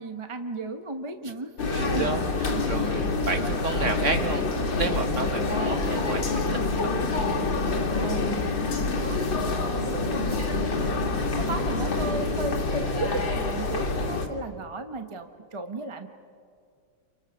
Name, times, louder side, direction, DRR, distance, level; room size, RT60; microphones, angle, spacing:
voice 1, 0.0-1.5 1.8-2.1 2.5-2.7 5.5-5.8 8.0-11.1 11.3-16.1, right 2 dB, 25° right, 6 dB, 0.7 m, -35 dB
sound 1, 1.6-14.3, left 3 dB, 65° left, 2.8 m, -27 dB
voice 2, 1.7-2.3 2.7-4.5 4.7-6.6 6.8-7.2 14.0-14.2, right 3 dB, 40° right, 6 dB, 1.5 m, -31 dB
29.5 x 28.0 x 6.3 m, 2.2 s
omnidirectional pair, 2.2 m